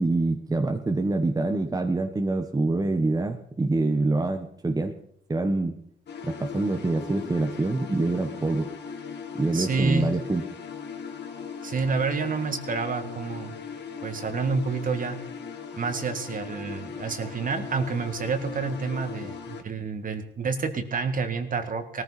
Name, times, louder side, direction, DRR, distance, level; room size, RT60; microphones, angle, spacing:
voice 1, 0.0-4.9 5.3-5.8 6.2-8.7 9.3-10.4, right 2 dB, 20° right, 5 dB, 1.2 m, -25 dB
sound 1, 6.1-19.6, left 6 dB, 60° left, 2.0 m, -38 dB
voice 2, 9.5-10.1 11.6-13.6 14.0-15.2 15.8-22.0, right 4 dB, 45° right, 7 dB, 1.9 m, -28 dB
18.5 x 14.5 x 4.3 m, 0.67 s
cardioid pair, 90°, 20 cm